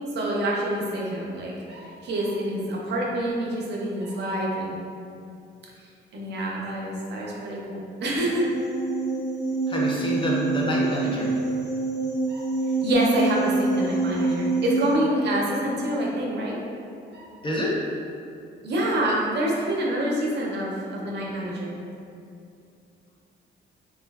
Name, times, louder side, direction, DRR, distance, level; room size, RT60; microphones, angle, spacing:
voice 1, 0.0-4.8 6.1-8.5 12.3-16.6 17.1-17.2 18.6-21.7, right 1 dB, 60° right, -3 dB, 0.6 m, -27 dB
sound 1, 8.2-14.9, right 3 dB, 70° left, 0.9 m, -26 dB
voice 2, 9.7-11.3 17.4-17.7, equal, 25° left, -4 dB, 0.5 m, -27 dB
3.0 x 2.3 x 2.3 m, 2.5 s
cardioid pair, 90°, 20 cm